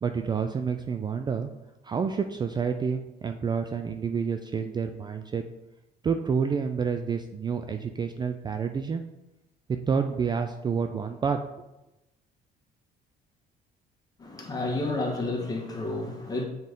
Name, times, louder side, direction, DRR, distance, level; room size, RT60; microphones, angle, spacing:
voice 1, 0.0-1.5 1.8-5.4 6.0-9.0 9.7-11.4, right 6 dB, 25° right, 6 dB, 0.3 m, -29 dB
voice 2, 14.2-16.4, left 2 dB, 20° left, 0 dB, 1.4 m, -30 dB
7.5 x 3.9 x 3.6 m, 0.97 s
cardioid pair, 110°, 17 cm